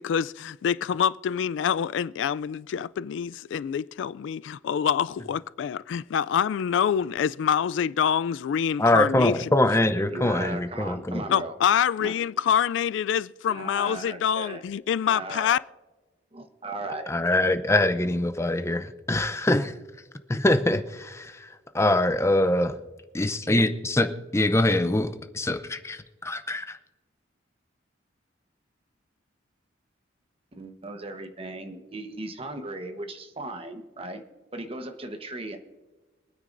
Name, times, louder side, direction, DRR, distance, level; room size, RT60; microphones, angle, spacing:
voice 1, 0.0-9.5 11.3-15.6, left 8 dB, 75° left, 0.3 m, -26 dB
voice 2, 8.8-11.3 17.1-18.8 19.1-19.7 20.3-22.8 23.1-26.8, left 1 dB, 15° left, 0.6 m, -24 dB
voice 3, 10.1-11.5 12.0-12.1 13.5-14.6 15.1-15.6 16.3-17.1 30.5-34.2 34.5-35.6, right 2 dB, 30° right, 1.1 m, -37 dB
25.0 x 9.6 x 2.6 m
head